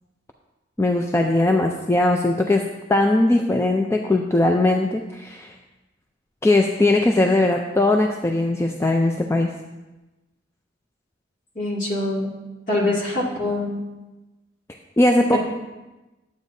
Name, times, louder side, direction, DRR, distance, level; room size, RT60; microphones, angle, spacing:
voice 1, 0.8-2.6 2.9-5.5 6.4-9.5 15.0-15.4, left 2 dB, 15° left, 2 dB, 0.4 m, -19 dB
voice 2, 11.6-12.3 12.7-13.8 15.3-15.4, left 2 dB, 45° left, -5 dB, 2.2 m, -24 dB
11.0 x 8.1 x 2.7 m, 1.1 s
head